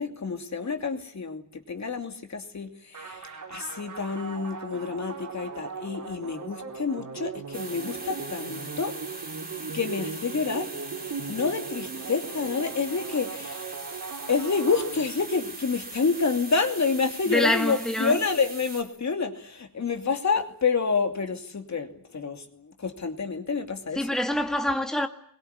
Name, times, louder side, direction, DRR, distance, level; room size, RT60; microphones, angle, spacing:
voice 1, 0.0-9.0 9.7-10.7 11.3-13.7 14.3-24.1, left 5 dB, 55° left, 2.8 m, -28 dB
sound 1, 2.9-15.5, right 5 dB, 65° right, 3.6 m, -39 dB
sound 2, 7.5-18.8, right 2 dB, 25° right, 2.9 m, -41 dB
voice 2, 17.3-18.2 24.0-25.1, left 1 dB, ahead, 2.0 m, -25 dB
24.0 x 22.5 x 9.6 m
wide cardioid pair, 155°, 34 cm